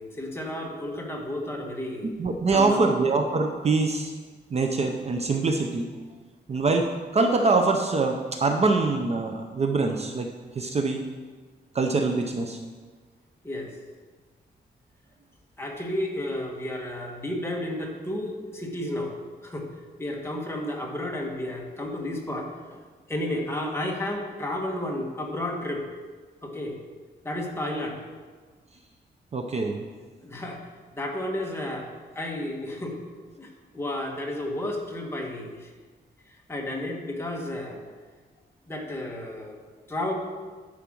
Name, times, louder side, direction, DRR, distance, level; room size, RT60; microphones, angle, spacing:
voice 1, 0.0-2.1 2.5-2.9 13.4-13.7 15.6-19.1 19.4-19.7 20.0-22.5 23.1-25.9 26.4-26.8 27.2-28.0 30.2-30.7 31.0-33.0 33.4-35.7 36.5-37.9 38.7-39.6 39.9-40.1, left 1 dB, 15° left, 0 dB, 1.3 m, -32 dB
voice 2, 2.2-4.1 4.5-5.9 6.5-6.9 7.1-10.3 10.6-11.0 11.7-12.6 29.3-29.8, right 3 dB, 35° right, 4 dB, 0.6 m, -24 dB
10.5 x 5.0 x 6.1 m, 1.4 s
wide cardioid pair, 155°, 18 cm